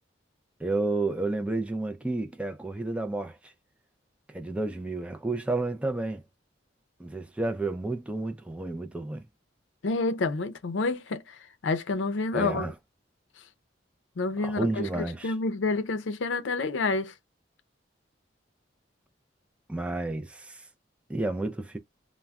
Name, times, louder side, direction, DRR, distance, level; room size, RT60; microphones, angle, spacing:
voice 1, 0.6-3.5 4.3-6.2 7.0-9.2 12.3-12.7 14.4-15.3 19.7-20.6 21.1-21.8, right 2 dB, 5° right, 0.3 m, -31 dB
voice 2, 9.8-11.4 11.6-12.7 14.2-17.1, left 3 dB, 80° left, 0.5 m, -29 dB
2.3 x 2.0 x 3.4 m
head